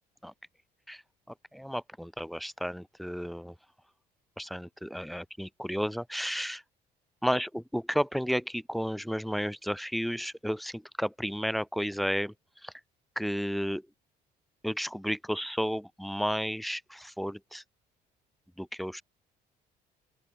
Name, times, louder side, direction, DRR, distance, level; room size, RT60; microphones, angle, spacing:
voice 1, 1.5-3.5 4.4-6.6 7.2-12.3 12.6-12.7 13.1-13.8 14.6-17.6 18.6-19.0, equal, ahead, 6.6 m, -32 dB
open air
cardioid pair, 110°, 17 cm